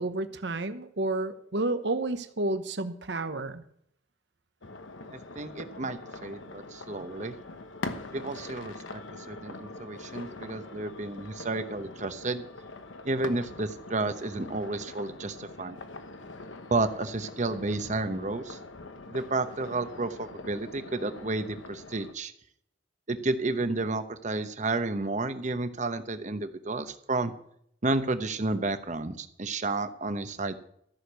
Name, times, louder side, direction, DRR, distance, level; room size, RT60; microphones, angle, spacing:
voice 1, 0.0-3.6, right 2 dB, 65° right, 10 dB, 1.0 m, -30 dB
sound 1, 4.6-22.1, left 2 dB, 85° left, 1.1 m, -43 dB
voice 2, 5.4-7.3 8.1-9.0 9.3-12.4 13.0-15.8 16.7-18.6 19.1-22.3 23.1-27.3 27.8-30.6, right 2 dB, 40° right, 10 dB, 0.9 m, -31 dB
14.5 x 6.6 x 7.9 m, 0.70 s
head